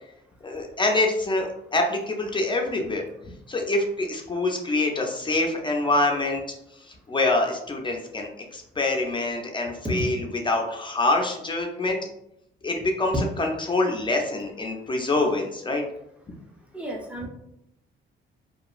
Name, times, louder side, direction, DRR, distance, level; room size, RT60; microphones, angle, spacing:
voice 1, 0.4-6.4 6.7-12.0 12.6-15.8, left 2 dB, 25° left, 1 dB, 0.4 m, -25 dB
voice 2, 16.7-17.3, right 1 dB, 5° right, -1 dB, 0.7 m, -32 dB
2.8 x 2.3 x 2.4 m, 0.78 s
cardioid pair, 90°, 20 cm